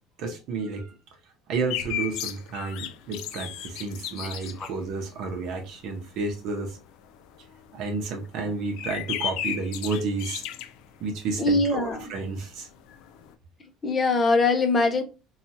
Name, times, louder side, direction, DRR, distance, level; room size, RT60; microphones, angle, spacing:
voice 1, 0.2-0.9 1.5-6.8 7.7-10.4 11.0-12.7, right 3 dB, 60° right, 0.7 m, -31 dB
sound 1, 1.7-11.8 12.1-12.2 12.4-13.3, left 10 dB, 75° left, 0.3 m, -35 dB
voice 2, 11.4-12.1 13.8-15.0, left 3 dB, 25° left, 0.6 m, -22 dB
2.9 x 2.3 x 2.7 m
cardioid pair, 150°, 0 cm